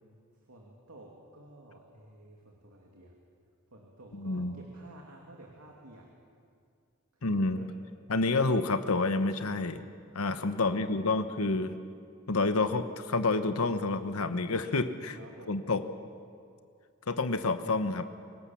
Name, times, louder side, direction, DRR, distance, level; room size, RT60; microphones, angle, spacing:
voice 1, 0.5-3.1 3.7-6.0 7.5-7.7 10.5-11.3 15.1-15.7, right 1 dB, 85° right, -1 dB, 2.6 m, -52 dB
voice 2, 4.1-4.6 7.2-7.6 8.1-9.8 10.1-11.7 12.3-15.2 15.5-15.8 17.1-18.0, left 3 dB, 75° left, 9 dB, 1.1 m, -28 dB
25.5 x 17.5 x 7.2 m, 2.2 s
head